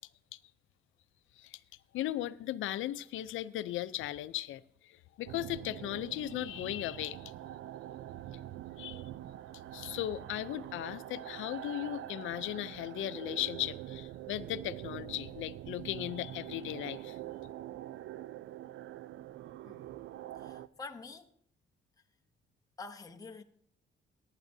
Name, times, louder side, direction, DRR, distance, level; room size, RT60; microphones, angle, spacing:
voice 1, 1.9-7.3 8.8-9.0 9.7-17.2, left 14 dB, 85° left, 0.5 m, -37 dB
sound 1, 5.3-20.7, right 13 dB, 75° right, 0.4 m, -45 dB
voice 2, 20.4-21.3 22.8-23.4, left 4 dB, 20° left, 0.8 m, -47 dB
18.0 x 9.9 x 2.7 m
cardioid pair, 90°, 20 cm